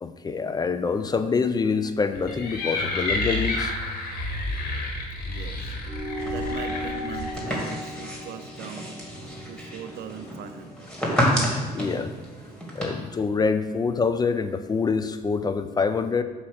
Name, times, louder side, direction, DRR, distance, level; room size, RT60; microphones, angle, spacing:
voice 1, 0.0-3.7 7.1-7.2 11.7-12.1 12.7-16.2, left 5 dB, 25° left, 10 dB, 0.4 m, -25 dB
sound 1, 2.1-7.3, left 2 dB, 65° left, 1.8 m, -30 dB
voice 2, 5.3-5.7 6.3-9.0 9.5-10.9, right 8 dB, 70° right, 10 dB, 0.6 m, -40 dB
sound 2, 5.9-10.7, left 1 dB, 15° right, 1.0 m, -36 dB
sound 3, 6.2-12.8, equal, 5° left, 2.1 m, -30 dB
8.6 x 2.9 x 6.3 m, 1.4 s
cardioid pair, 110°, 17 cm